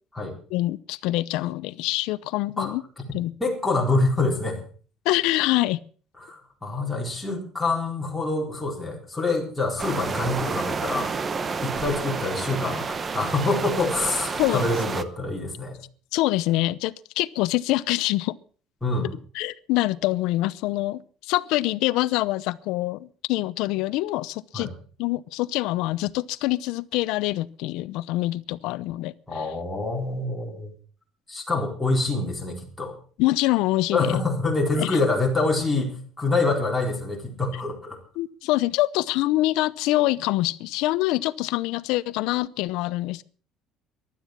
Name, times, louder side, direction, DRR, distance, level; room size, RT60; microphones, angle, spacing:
voice 1, 0.5-2.8 3.1-3.3 5.0-5.8 14.4-14.7 16.1-18.3 19.3-24.7 25.0-29.5 33.2-34.1 34.8-35.0 38.2-43.2, left 17 dB, 75° left, 0.7 m, -25 dB
voice 2, 3.4-4.6 6.2-11.1 11.6-12.9 13.1-15.8 18.8-19.1 24.5-24.7 29.3-30.7 31.3-32.9 33.9-38.0, left 3 dB, 5° left, 4.1 m, -26 dB
sound 1, 9.8-15.0, right 5 dB, 25° right, 0.8 m, -30 dB
15.5 x 12.0 x 6.0 m
cardioid pair, 165°, 0 cm